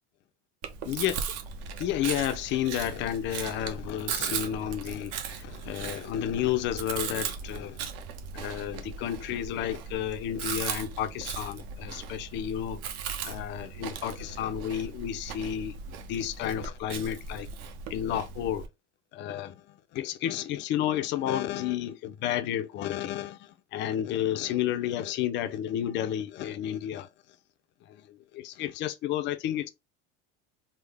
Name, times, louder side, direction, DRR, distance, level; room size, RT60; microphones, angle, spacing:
Chewing mastication, 0.6-18.7, right 6 dB, 50° right, 0.6 m, -38 dB
voice 1, 0.9-1.2 1.8-7.8 8.3-12.8 13.2-15.8 16.1-17.5 17.9-18.6 19.1-27.1 27.9-29.7, left 11 dB, 35° left, 0.4 m, -31 dB
3.4 x 2.0 x 3.3 m
supercardioid pair, 135°, 32 cm